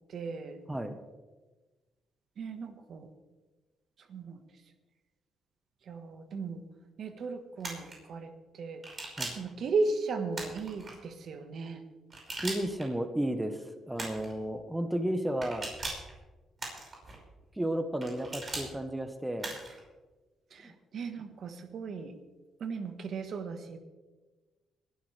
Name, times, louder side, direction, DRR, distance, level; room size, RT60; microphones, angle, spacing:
voice 1, 0.1-0.6 2.4-3.1 4.1-4.4 5.9-6.6 7.0-8.8 9.2-11.8 20.5-22.2 22.6-23.8, right 4 dB, 60° right, 8 dB, 1.4 m, -36 dB
sound 1, 7.6-7.9 8.8-9.5 10.3-10.9 12.1-12.9 14.0-14.3 15.4-16.1 16.6-17.2 18.0-18.7 19.4-19.8, right 2 dB, 35° right, 5.4 m, -39 dB
voice 2, 12.4-15.7 17.6-19.6 20.6-20.7, right 1 dB, 10° right, 8 dB, 1.1 m, -33 dB
21.0 x 12.0 x 3.4 m, 1.2 s
cardioid pair, 90°, 0 cm